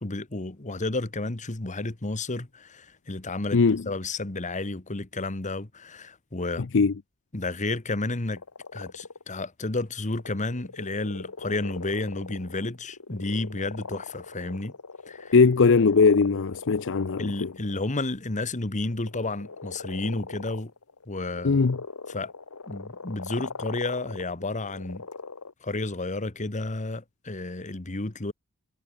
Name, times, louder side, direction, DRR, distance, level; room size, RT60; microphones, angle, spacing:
voice 1, 0.0-6.7 7.3-8.4 8.7-14.7 15.1-15.3 17.2-20.7 21.1-21.6 22.1-22.3 22.7-25.1 25.6-28.3, left 2 dB, 35° left, 1.5 m, -31 dB
voice 2, 3.5-3.8 6.7-6.9 15.3-17.5 21.4-21.8, left 4 dB, 60° left, 0.6 m, -20 dB
sound 1, 8.4-9.2 10.0-17.9 18.3-18.5 18.8-25.5, left 4 dB, 85° left, 1.5 m, -41 dB
head